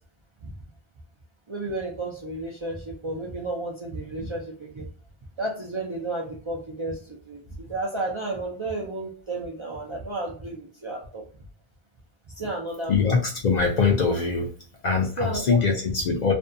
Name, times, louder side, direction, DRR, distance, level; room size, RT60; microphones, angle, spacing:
voice 1, 1.5-4.9 5.4-11.2 12.4-13.2 15.2-15.6, right 2 dB, 45° right, -3 dB, 0.4 m, -32 dB
voice 2, 12.9-14.5 14.8-16.3, left 5 dB, 55° left, 1 dB, 0.5 m, -22 dB
2.6 x 2.2 x 2.5 m, 0.42 s
omnidirectional pair, 1.0 m